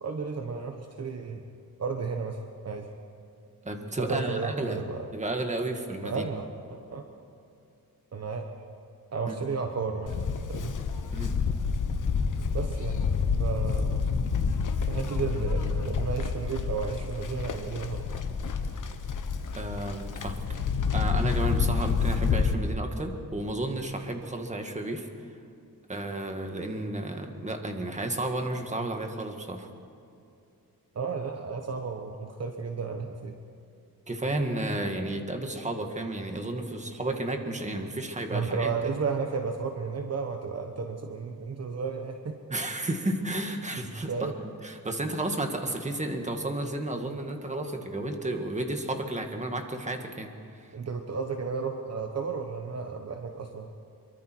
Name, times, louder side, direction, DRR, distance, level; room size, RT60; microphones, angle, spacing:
voice 1, 0.0-1.4 1.8-2.9 4.0-5.1 6.0-7.1 8.1-8.7 9.1-10.2 10.5-10.7 12.5-13.0 13.4-14.1 14.9-18.1 30.9-33.3 38.3-42.4 44.1-44.3 50.7-53.7, right 5 dB, 45° right, 4 dB, 1.1 m, -33 dB
voice 2, 3.6-4.8 5.1-6.2 9.3-9.4 11.1-11.3 19.5-20.4 20.9-25.1 25.9-29.7 34.1-38.7 42.5-50.3, right 2 dB, 20° right, 4 dB, 1.8 m, -32 dB
Livestock farm animals working animals, 10.1-22.5, left 5 dB, 55° left, 1.4 m, -28 dB
25.5 x 23.5 x 4.6 m, 2.6 s
wide cardioid pair, 150°, 36 cm